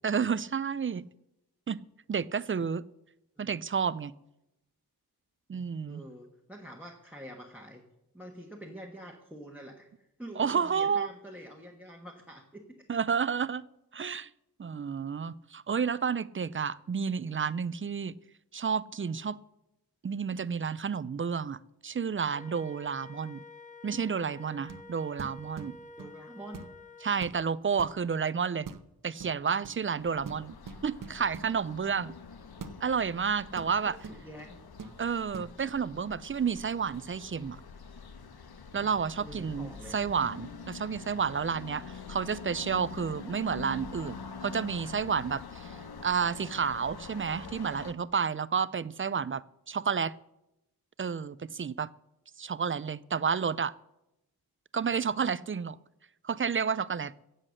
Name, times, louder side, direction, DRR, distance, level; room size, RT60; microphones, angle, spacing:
voice 1, 0.0-1.1 1.7-1.8 2.1-2.8 3.4-4.1 5.5-6.0 10.4-11.1 12.9-13.6 13.9-14.3 14.6-18.1 18.5-19.4 20.0-23.4 23.8-25.8 27.0-28.7 29.0-30.6 30.8-32.1 32.8-34.0 35.0-37.6 38.7-44.2 44.4-50.1 51.0-51.9 52.4-53.7 54.7-55.8 56.2-57.1, right 6 dB, 35° right, 19 dB, 0.4 m, -31 dB
voice 2, 5.8-7.8 8.1-9.9 10.2-12.8 26.0-26.7 33.8-34.6 39.2-40.0, equal, 5° right, 1 dB, 1.3 m, -46 dB
Wind instrument woodwind instrument, 22.3-27.2, left 3 dB, 20° left, 0.8 m, -49 dB
sound 1, 24.7-24.9 25.2-26.2 26.5-26.8 27.2-28.0 28.6-28.9 29.2-29.8 30.2-31.5 32.6-32.8 33.6-34.5 34.8-35.0 35.3-35.5, right 5 dB, 55° right, 0.9 m, -44 dB
sound 2, 30.0-47.9, left 5 dB, 70° left, 1.1 m, -46 dB
15.0 x 8.1 x 6.4 m, 0.88 s
wide cardioid pair, 115°, 38 cm